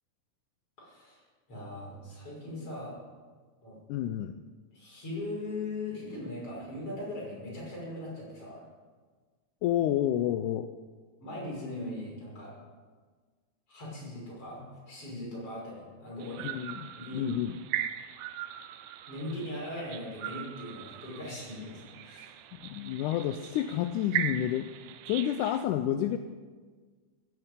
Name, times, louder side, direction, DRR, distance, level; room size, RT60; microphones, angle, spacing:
voice 1, 0.8-1.2 1.5-3.0 3.6-3.8 4.7-8.6 11.2-12.5 13.7-16.5 16.9-17.3 19.1-22.3, left 1 dB, 45° left, -5 dB, 6.8 m, -39 dB
voice 2, 3.9-4.3 9.6-10.7 16.4-17.6 22.6-24.7 25.1-26.2, left 11 dB, 85° left, 9 dB, 2.1 m, -29 dB
sound 1, 16.2-25.6, right 11 dB, 85° right, 2.3 m, -39 dB
15.5 x 8.9 x 9.0 m, 1.5 s
omnidirectional pair, 3.5 m